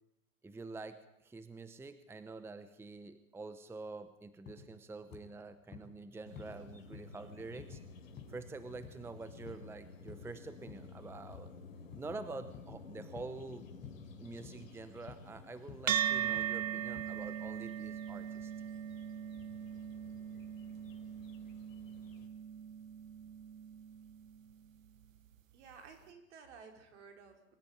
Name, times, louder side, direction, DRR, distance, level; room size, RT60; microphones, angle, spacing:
voice 1, 0.4-7.8 8.3-11.5 11.9-13.7 14.0-18.5, right 3 dB, 5° right, 12 dB, 0.9 m, -47 dB
sound 1, 4.5-4.7 5.1-5.3 5.7-5.9 6.4-6.6 6.9-7.2 7.6-7.8 8.2-8.4 8.8-9.0 9.5-9.7 10.1-10.3 10.7-10.9 11.3-11.5 11.9-12.2 12.5-12.8 13.2-13.4 13.8-14.1 14.4-14.6 15.1-15.3 15.7-15.9 16.4-16.6 17.0-17.1, left 7 dB, 25° left, 5.1 m, -51 dB
sound 2, 6.2-22.3, left 4 dB, 80° left, 3.9 m, -54 dB
sound 3, 15.9-24.5, right 10 dB, 80° right, 1.2 m, -39 dB
voice 2, 25.5-27.5, right 5 dB, 60° right, 4 dB, 5.4 m, -54 dB
24.0 x 14.5 x 9.3 m, 0.84 s
hypercardioid pair, 115°, 39 cm